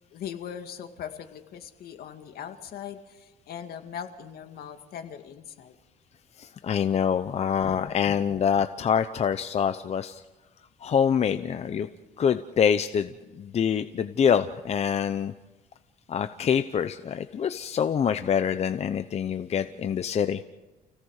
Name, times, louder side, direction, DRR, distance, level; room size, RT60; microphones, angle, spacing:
voice 1, 0.1-5.8 7.7-8.0, left 8 dB, 65° left, 7 dB, 2.2 m, -40 dB
voice 2, 6.4-10.2 10.8-11.9 12.2-13.1 13.4-15.3 16.1-20.4, left 7 dB, 40° left, 10 dB, 0.8 m, -25 dB
29.0 x 17.0 x 6.6 m, 1.2 s
cardioid pair, 110°, 17 cm